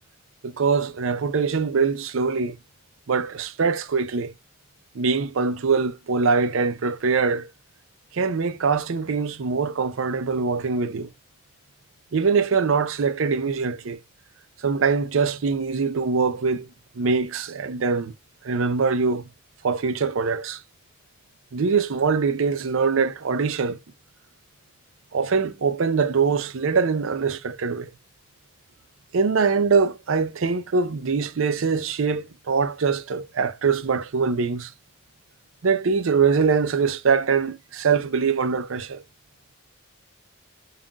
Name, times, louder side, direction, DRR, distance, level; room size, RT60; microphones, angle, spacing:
voice 1, 0.4-2.6 3.1-4.3 5.0-7.5 8.1-11.1 12.1-14.0 14.6-16.7 17.0-18.1 18.4-19.2 19.6-20.6 21.5-23.8 25.1-27.9 29.1-34.7 35.6-39.0, right 5 dB, 65° right, 0.5 m, -23 dB
5.5 x 2.4 x 2.3 m
head